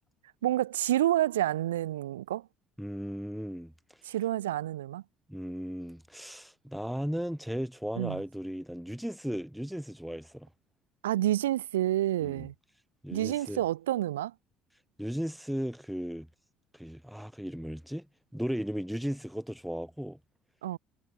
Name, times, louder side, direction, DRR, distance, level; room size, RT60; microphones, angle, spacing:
voice 1, 0.4-2.5 4.0-5.0 8.0-8.2 11.0-12.5 13.1-14.3 20.6-20.8, right 13 dB, 75° right, 1.0 m, -29 dB
voice 2, 2.8-3.7 5.3-10.5 12.2-12.5 13.0-13.6 15.0-16.3 16.7-18.1 18.3-20.2, equal, ahead, 0.6 m, -36 dB
figure-of-eight pair, 55°, 0 cm